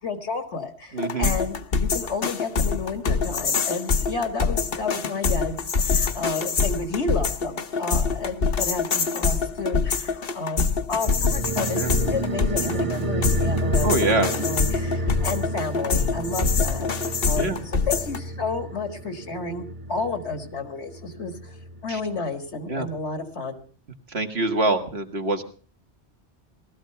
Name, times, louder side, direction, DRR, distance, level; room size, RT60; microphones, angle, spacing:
voice 1, 0.0-21.6 21.8-23.6, left 3 dB, 75° left, 8 dB, 2.1 m, -31 dB
voice 2, 0.9-1.3 11.7-11.9 13.8-14.3 17.4-17.6 21.9-22.0 22.7-22.9 24.1-25.4, right 2 dB, 65° right, 5 dB, 2.0 m, -24 dB
sound 1, 1.0-18.2, left 5 dB, 60° left, 1.2 m, -25 dB
sound 2, 11.0-21.9 22.2-22.3, right 2 dB, 30° right, 1.0 m, -31 dB
18.5 x 13.5 x 5.6 m, 0.42 s
omnidirectional pair, 1.2 m